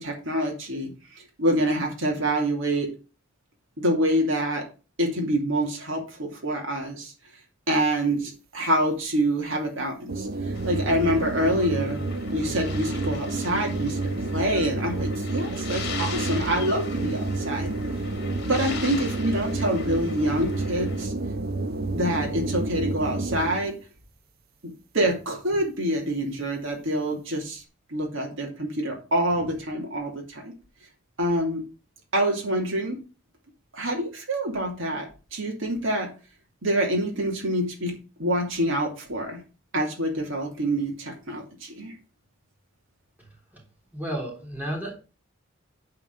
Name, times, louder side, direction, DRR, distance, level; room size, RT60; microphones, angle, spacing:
voice 1, 0.0-2.9 3.8-4.6 5.0-7.1 7.7-12.0 12.3-14.0 14.3-17.7 18.5-21.1 21.9-23.7 24.9-27.6 27.9-30.5 31.2-31.6 32.1-33.0 33.7-35.0 35.3-36.1 36.6-37.9 38.2-39.4 39.7-41.9, right 1 dB, 70° right, 0 dB, 2.7 m, -26 dB
sound 1, 10.1-23.8, right 2 dB, 50° right, 0.8 m, -30 dB
sound 2, 10.5-21.0, left 5 dB, 55° left, 2.0 m, -40 dB
voice 2, 43.9-44.9, equal, 10° right, -2 dB, 3.5 m, -32 dB
9.3 x 4.8 x 6.1 m, 0.33 s
head